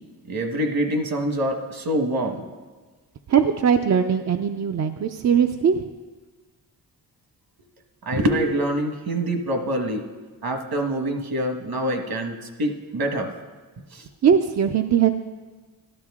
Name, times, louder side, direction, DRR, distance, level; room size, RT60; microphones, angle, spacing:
voice 1, 0.3-2.4 8.0-10.0 10.4-13.3 13.9-14.1, right 1 dB, 60° right, 4 dB, 1.4 m, -25 dB
voice 2, 3.3-5.8 14.2-15.1, right 7 dB, 45° right, 6 dB, 0.5 m, -20 dB
12.5 x 11.5 x 3.6 m, 1.3 s
wide cardioid pair, 105°, 40 cm